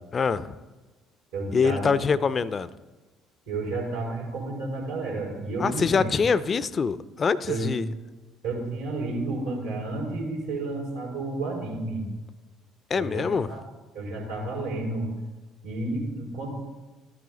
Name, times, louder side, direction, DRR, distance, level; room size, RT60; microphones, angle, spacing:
voice 1, 0.1-0.6 1.5-2.7 5.6-7.9 12.9-13.5, left 5 dB, 35° left, 16 dB, 0.6 m, -24 dB
voice 2, 1.3-1.9 3.5-6.1 7.5-7.7 8.4-12.0 12.9-13.6 13.9-15.1 15.6-16.7, right 2 dB, 85° right, -6 dB, 4.6 m, -31 dB
13.0 x 10.0 x 4.0 m, 1.2 s
figure-of-eight pair, 55°, 0 cm